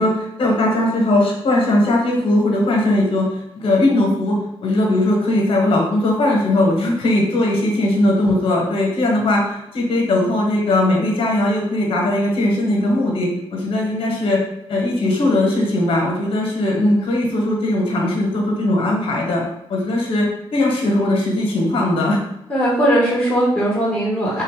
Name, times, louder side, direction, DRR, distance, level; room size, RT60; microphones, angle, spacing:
voice 1, 0.0-14.4 14.7-19.4 19.7-22.2, left 1 dB, 60° left, 0 dB, 1.2 m, -19 dB
voice 2, 22.5-24.4, right 1 dB, 5° left, -6 dB, 1.1 m, -18 dB
3.5 x 2.6 x 3.6 m, 0.84 s
cardioid pair, 125°, 10 cm